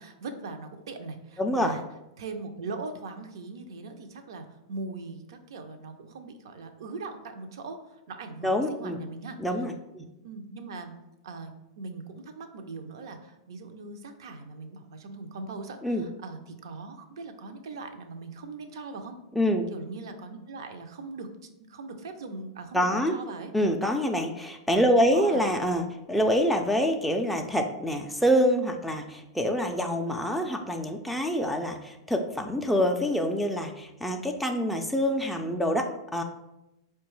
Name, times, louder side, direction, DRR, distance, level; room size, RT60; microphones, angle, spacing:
voice 1, 0.0-1.8 2.2-9.4 10.2-11.0 11.2-11.5 11.8-19.2 19.7-21.3 21.7-23.5 25.1-25.5, right 3 dB, 70° right, 7 dB, 0.5 m, -40 dB
voice 2, 1.4-1.8 8.4-9.0 9.4-10.1 15.8-16.1 19.4-19.6 22.7-23.1 23.5-36.2, equal, ahead, 2 dB, 0.3 m, -26 dB
4.5 x 2.2 x 3.1 m, 0.93 s
hypercardioid pair, 110°, 3 cm